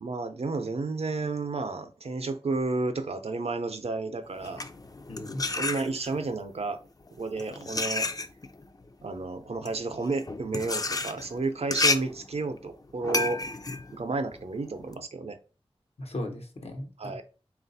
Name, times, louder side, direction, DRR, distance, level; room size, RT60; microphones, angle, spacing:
voice 1, 0.0-4.6 5.5-6.8 7.1-8.1 9.0-13.4 13.9-15.4 17.0-17.2, right 3 dB, 75° right, 8 dB, 0.6 m, -31 dB
sound 1, 4.3-6.3 7.1-15.0, left 3 dB, 35° left, 0.4 m, -31 dB
voice 2, 5.1-5.4 16.0-17.2, left 1 dB, 75° left, 4 dB, 1.0 m, -37 dB
4.0 x 2.5 x 4.0 m, 0.34 s
wide cardioid pair, 50°, 11 cm